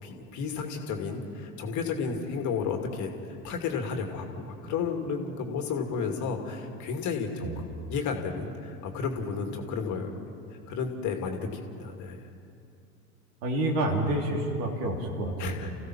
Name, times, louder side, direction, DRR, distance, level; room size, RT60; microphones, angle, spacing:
voice 1, 0.0-3.1 3.4-10.1 10.7-12.2 15.4-15.7, left 5 dB, 40° left, 4 dB, 2.5 m, -32 dB
voice 2, 13.4-15.7, right 1 dB, 55° right, 1 dB, 3.7 m, -29 dB
29.5 x 16.0 x 6.1 m, 2.6 s
figure-of-eight pair, 80°, 45 cm